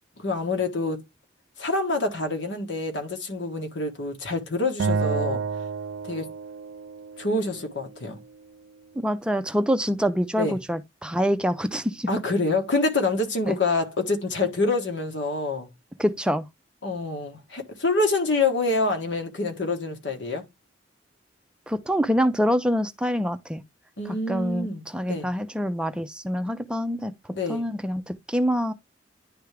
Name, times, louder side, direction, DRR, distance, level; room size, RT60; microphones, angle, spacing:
voice 1, 0.2-1.0 1.6-5.4 6.1-6.3 7.2-8.2 10.4-10.6 12.1-15.7 16.8-20.4 24.0-24.8 25.1-25.3 27.3-27.7, left 3 dB, 80° left, 1.6 m, -26 dB
Acoustic guitar, 4.8-8.0, right 5 dB, 85° right, 0.4 m, -30 dB
voice 2, 9.0-12.1 13.5-13.6 16.0-16.4 21.7-23.6 24.3-27.1 27.5-28.7, equal, 5° right, 0.4 m, -25 dB
10.0 x 3.5 x 3.4 m
head